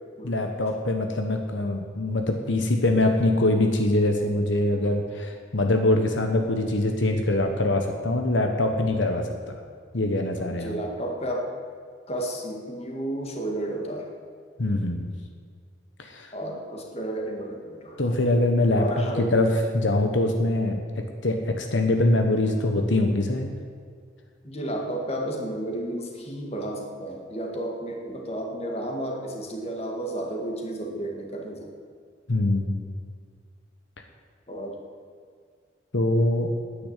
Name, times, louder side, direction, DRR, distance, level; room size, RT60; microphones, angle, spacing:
voice 1, 0.2-9.6 9.9-10.8 14.6-15.1 16.0-16.3 18.0-19.0 19.3-20.8 21.2-23.5 32.3-32.8 35.9-36.5, left 2 dB, 75° left, 4 dB, 1.1 m, -23 dB
voice 2, 10.5-11.5 12.1-14.1 16.3-18.2 18.7-19.4 24.4-31.7 34.5-34.8, right 1 dB, 35° left, 1 dB, 2.0 m, -32 dB
10.5 x 9.5 x 8.3 m, 2.1 s
head